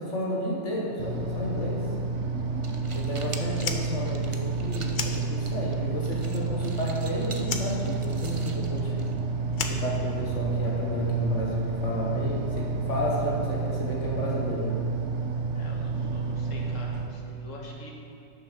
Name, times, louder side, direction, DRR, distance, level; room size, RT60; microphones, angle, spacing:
voice 1, 0.0-1.9 2.9-9.0 9.6-14.9, left 1 dB, 70° left, -3 dB, 1.8 m, -31 dB
sound 1, 1.0-17.1, right 4 dB, 70° right, 1.2 m, -30 dB
sound 2, 2.4-9.5, right 3 dB, 35° right, 0.5 m, -46 dB
Fire, 3.5-5.8 6.1-7.1 7.4-10.6, left 5 dB, 50° left, 0.7 m, -36 dB
voice 2, 15.5-17.9, left 2 dB, 85° left, -1 dB, 1.8 m, -45 dB
11.0 x 6.6 x 5.0 m, 2.7 s
omnidirectional pair, 1.3 m